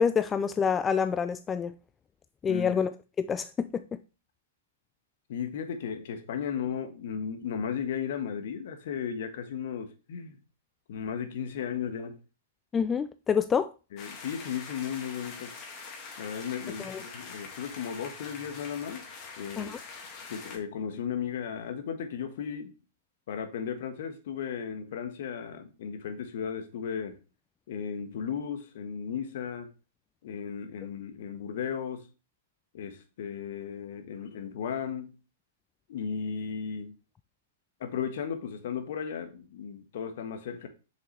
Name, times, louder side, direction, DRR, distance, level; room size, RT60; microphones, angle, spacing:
voice 1, 0.0-1.7 2.4-2.9 3.2-4.0 12.7-13.7 16.8-17.0 19.6-19.8, left 6 dB, 20° left, 0.3 m, -27 dB
voice 2, 2.5-2.8 5.3-10.4 10.9-12.2 13.9-15.5 16.2-19.0 19.4-19.7 20.3-22.7 23.3-27.2 27.7-29.7 30.2-32.0 32.7-35.1 35.9-37.0 37.8-40.7, left 7 dB, 55° left, 1.4 m, -35 dB
sound 1, 14.0-20.6, left 5 dB, 35° left, 1.9 m, -44 dB
7.4 x 6.5 x 3.2 m
figure-of-eight pair, 105°, 0 cm